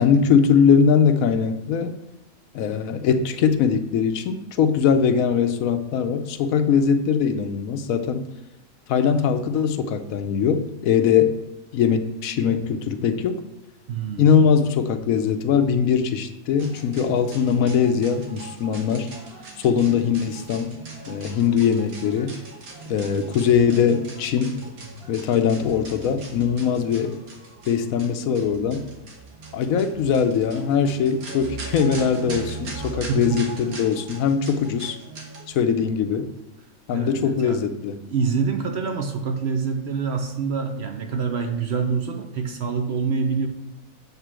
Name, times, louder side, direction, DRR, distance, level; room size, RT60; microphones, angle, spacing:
voice 1, 0.0-1.9 2.5-8.2 8.9-11.3 11.7-13.4 14.2-19.1 19.6-20.7 21.1-22.4 22.9-24.5 25.1-27.2 27.7-28.8 29.5-35.0 35.5-36.3 36.9-38.0, left 7 dB, 75° left, 8 dB, 1.0 m, -21 dB
voice 2, 13.9-14.5 33.1-33.4 36.9-37.6 38.0-43.5, right 5 dB, 55° right, 4 dB, 0.9 m, -26 dB
sound 1, 16.6-35.5, right 3 dB, 80° right, 1.7 m, -39 dB
8.1 x 3.7 x 6.1 m, 1.0 s
omnidirectional pair, 1.5 m